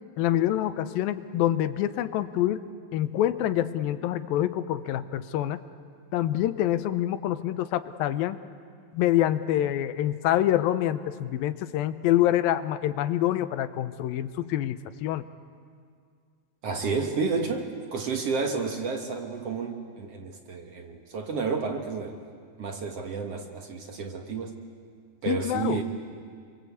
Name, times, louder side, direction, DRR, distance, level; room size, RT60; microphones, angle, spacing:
voice 1, 0.2-2.6 2.9-5.6 6.1-8.4 8.9-15.2 25.3-25.8, left 12 dB, 85° left, 12 dB, 2.6 m, -26 dB
voice 2, 16.6-22.2 22.6-24.6 25.2-25.8, right 4 dB, 55° right, 4 dB, 1.9 m, -31 dB
27.0 x 23.5 x 8.3 m, 2.1 s
omnidirectional pair, 4.1 m